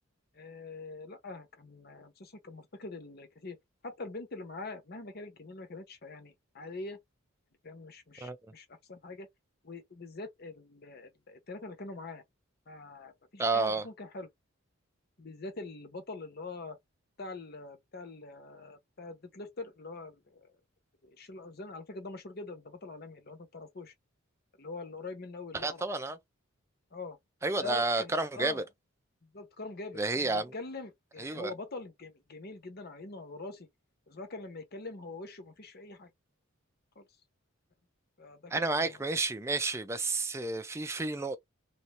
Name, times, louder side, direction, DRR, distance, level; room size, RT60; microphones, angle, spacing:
voice 1, 0.3-3.6 3.8-7.0 7.6-9.3 9.6-12.2 12.7-14.3 15.2-16.8 17.2-20.5 21.0-23.9 24.6-25.9 26.9-27.2 27.6-28.6 29.2-33.7 34.1-36.1 37.0-37.1 38.2-39.0, left 3 dB, 50° left, 0.9 m, -44 dB
voice 2, 13.4-13.9 25.5-26.2 27.4-28.6 30.0-30.5 31.2-31.5 38.5-41.4, right 3 dB, 15° right, 0.4 m, -31 dB
3.1 x 2.6 x 2.9 m
head